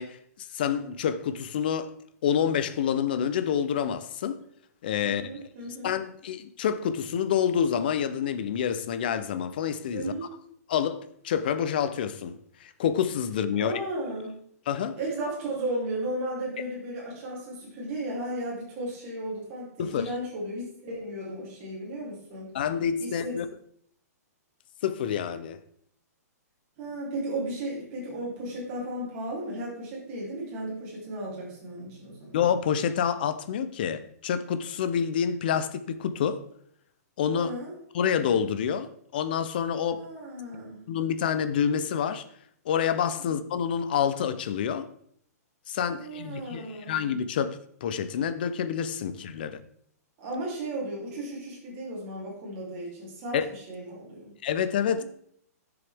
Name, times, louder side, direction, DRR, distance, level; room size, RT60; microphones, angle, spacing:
voice 1, 0.0-1.9 2.2-4.4 4.8-5.2 5.8-10.1 10.7-13.7 14.7-15.0 19.8-20.0 22.5-23.4 24.8-25.6 32.3-36.4 37.2-37.5 37.9-40.0 40.9-42.2 42.7-44.9 45.7-49.6 53.3-53.5 54.4-55.0, left 8 dB, 35° left, 0.5 m, -28 dB
voice 2, 5.0-5.9 9.9-10.2 13.5-14.4 14.9-22.5 23.0-23.4 26.8-32.4 37.3-37.7 39.9-40.8 43.2-43.3 45.9-47.0 50.2-54.3 54.9-55.0, right 1 dB, 20° right, 3.0 m, -35 dB
10.5 x 6.9 x 3.4 m
hypercardioid pair, 180°, 9 cm